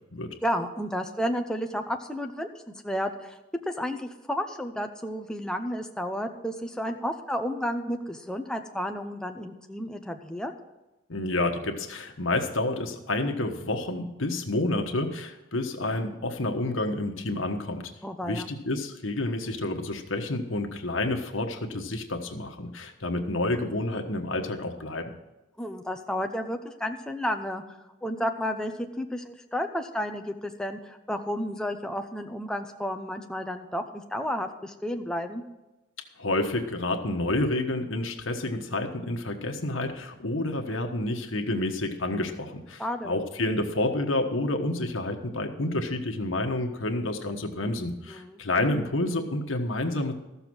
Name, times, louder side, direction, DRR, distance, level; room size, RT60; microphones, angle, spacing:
voice 1, 0.4-2.5 2.8-3.4 3.7-10.5 18.0-18.5 25.6-27.6 28.0-35.4 42.8-43.1 48.1-48.4, equal, 5° left, 4 dB, 0.7 m, -32 dB
voice 2, 11.1-17.9 18.2-25.1 36.2-50.1, left 2 dB, 85° left, 5 dB, 1.3 m, -29 dB
14.0 x 7.0 x 6.2 m, 1.0 s
head